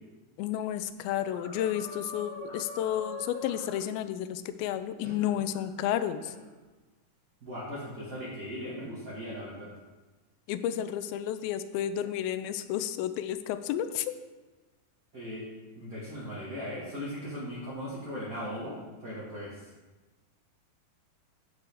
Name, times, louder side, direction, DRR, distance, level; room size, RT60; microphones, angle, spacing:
voice 1, 0.4-6.3 10.5-14.2, left 11 dB, 90° left, 11 dB, 2.4 m, -31 dB
sound 1, 1.3-3.9 5.0-5.6 6.3-6.5, left 2 dB, 35° left, 3.2 m, -43 dB
voice 2, 7.4-9.7 15.1-15.5 15.7-19.7, equal, 45° right, -7 dB, 1.1 m, -38 dB
8.3 x 7.4 x 3.5 m, 1.2 s
omnidirectional pair, 4.1 m